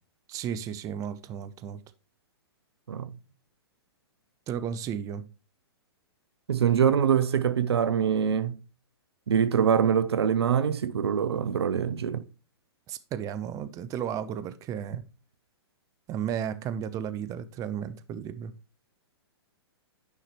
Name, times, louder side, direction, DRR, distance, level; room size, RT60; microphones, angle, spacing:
voice 1, 0.3-1.8 4.5-5.3 12.9-15.0 16.1-18.5, right 8 dB, 25° right, 0.7 m, -34 dB
voice 2, 6.5-8.6 9.3-12.2, right 8 dB, 75° right, 0.7 m, -24 dB
9.7 x 5.7 x 3.2 m
hypercardioid pair, 120°, 14 cm